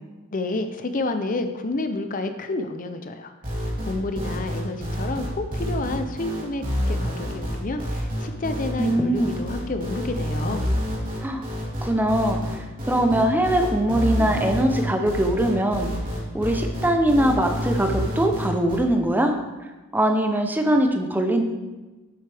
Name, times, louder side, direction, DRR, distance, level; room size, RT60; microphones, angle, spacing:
voice 1, 0.3-3.3 3.8-10.6, left 2 dB, 40° left, 8 dB, 0.5 m, -29 dB
sound 1, 3.4-18.8, equal, 40° right, 3.2 m, -28 dB
voice 2, 8.8-9.3 11.2-11.4 11.8-12.4 12.9-15.9 16.3-19.4 19.9-21.4, right 1 dB, 10° right, 4 dB, 0.7 m, -21 dB
10.5 x 7.8 x 3.4 m, 1.2 s
head